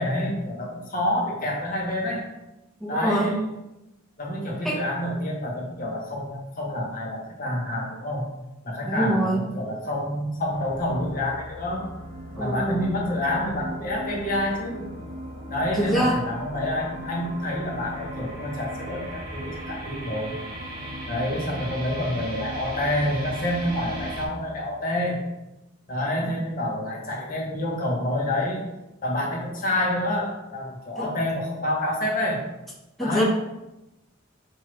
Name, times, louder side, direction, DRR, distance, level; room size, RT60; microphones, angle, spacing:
voice 1, 0.0-2.2 2.9-3.4 4.2-8.3 8.6-11.8 12.3-14.9 15.5-20.3 21.1-25.2 25.9-28.6 29.0-32.4 33.0-33.2, left 1 dB, 45° left, -2 dB, 1.0 m, -28 dB
voice 2, 2.8-3.4 4.6-4.8 8.8-9.5 12.3-12.9 15.7-16.2 30.9-31.1 33.0-33.2, equal, ahead, -6 dB, 0.9 m, -24 dB
sound 1, 10.5-24.3, equal, 50° right, 0.8 m, -37 dB
6.0 x 2.7 x 3.1 m, 0.96 s
head